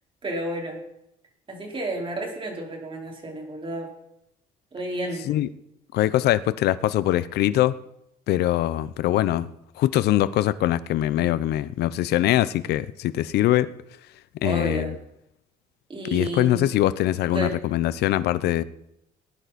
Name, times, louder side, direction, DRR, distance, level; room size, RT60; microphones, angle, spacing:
voice 1, 0.2-0.8 1.5-3.9 4.7-5.3 14.4-14.9 15.9-16.7 17.3-17.6, right 1 dB, 30° right, 1 dB, 4.7 m, -31 dB
voice 2, 5.9-7.7 8.3-9.5 9.8-13.7 14.4-14.9 16.1-18.6, left 14 dB, 75° left, 15 dB, 0.8 m, -22 dB
19.5 x 10.5 x 4.3 m, 0.80 s
cardioid pair, 110°, 17 cm